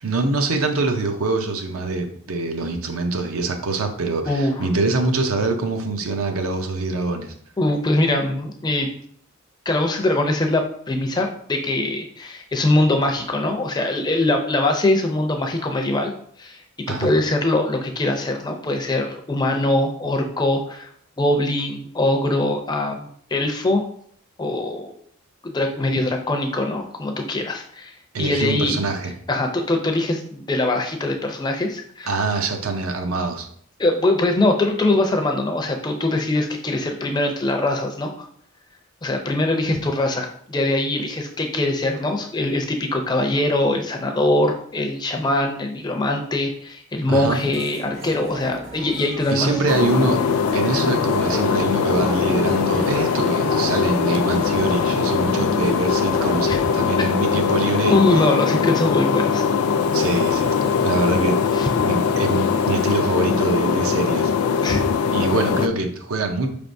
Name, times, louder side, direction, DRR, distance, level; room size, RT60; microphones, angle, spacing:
voice 1, 0.0-7.3 16.9-17.1 28.1-29.1 32.1-33.5 47.1-47.5 49.3-50.2 50.5-58.0 59.9-61.4 61.8-64.3 65.1-66.5, right 3 dB, 75° right, 5 dB, 0.6 m, -24 dB
voice 2, 4.3-4.7 7.6-8.9 9.7-16.1 16.4-16.6 16.9-20.9 21.2-23.8 24.4-24.9 25.4-27.9 28.2-28.8 29.3-32.1 33.8-38.3 39.0-49.6 56.5-56.6 57.9-59.4 61.5-61.7 64.6-64.8, left 2 dB, 20° left, 3 dB, 0.4 m, -22 dB
sound 1, 47.1-56.9, right 2 dB, 60° right, 1.2 m, -35 dB
sound 2, 49.7-65.7, left 6 dB, 85° left, 0.3 m, -21 dB
Sawing, 59.4-63.0, right 1 dB, 35° right, 0.6 m, -44 dB
5.0 x 3.4 x 2.6 m, 0.62 s
head